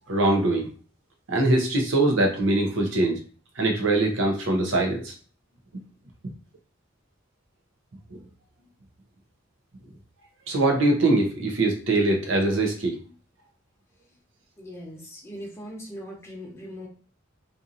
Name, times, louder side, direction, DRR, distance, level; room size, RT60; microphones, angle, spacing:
voice 1, 0.1-0.7 1.3-3.2 3.6-5.1 10.5-13.0, right 2 dB, 80° right, 2 dB, 0.7 m, -22 dB
voice 2, 14.6-16.9, equal, 15° left, -3 dB, 0.9 m, -40 dB
2.7 x 2.6 x 2.5 m, 0.38 s
head